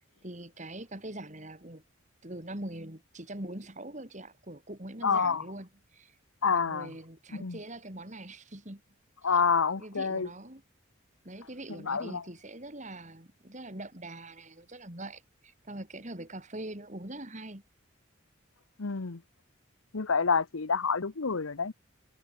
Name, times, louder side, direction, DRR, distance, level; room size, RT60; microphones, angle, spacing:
voice 1, 0.2-1.8 2.2-6.1 6.5-8.8 9.8-10.6 11.2-17.6, right 1 dB, 35° right, 3.3 m, -43 dB
voice 2, 5.0-5.4 6.4-6.9 7.3-7.6 9.2-10.3 11.7-12.2 18.8-19.2 19.9-21.7, left 5 dB, 80° left, 1.0 m, -28 dB
head